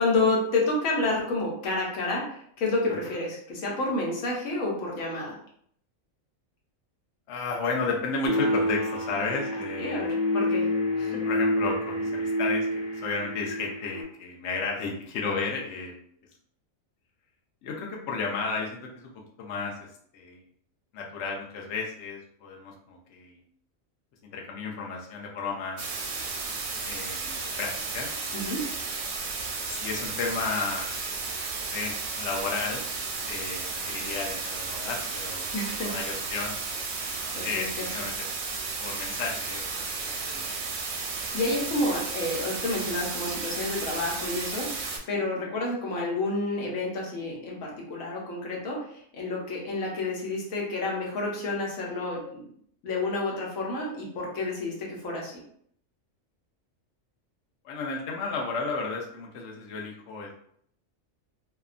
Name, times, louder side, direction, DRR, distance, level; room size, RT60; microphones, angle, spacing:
voice 1, 0.0-5.4 9.8-10.7 11.0-11.2 28.3-28.7 35.5-35.9 37.3-37.8 41.3-52.5 52.8-55.3, left 2 dB, 90° left, -2 dB, 1.2 m, -29 dB
voice 2, 7.3-10.1 11.2-12.7 12.9-15.9 17.6-19.7 20.1-20.4 20.9-23.4 24.2-26.0 26.8-28.1 29.7-31.0 31.5-32.8 33.3-35.5 35.8-36.6 37.4-38.1 38.8-40.5 57.6-60.3, left 4 dB, 65° left, -1 dB, 0.8 m, -33 dB
sound 1, 8.3-14.0, left 1 dB, 45° left, 1.2 m, -28 dB
sound 2, 25.8-45.0, right 4 dB, 85° right, 1.0 m, -33 dB
2.7 x 2.2 x 2.4 m, 0.65 s
omnidirectional pair, 1.4 m